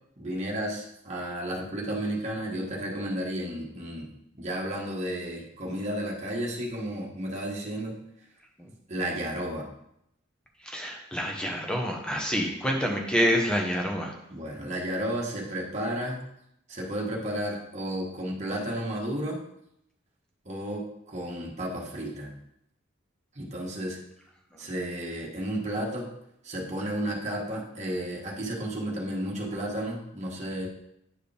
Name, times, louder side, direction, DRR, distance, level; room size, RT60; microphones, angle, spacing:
voice 1, 0.2-4.1 4.3-7.9 8.9-9.7 14.3-16.2 16.7-19.4 20.4-22.3 23.3-24.0 24.6-26.1 26.4-30.7, right 1 dB, 35° right, -2 dB, 1.4 m, -32 dB
voice 2, 10.6-14.1 24.5-24.7, equal, 5° left, 1 dB, 1.0 m, -27 dB
9.6 x 4.8 x 3.4 m, 0.79 s
head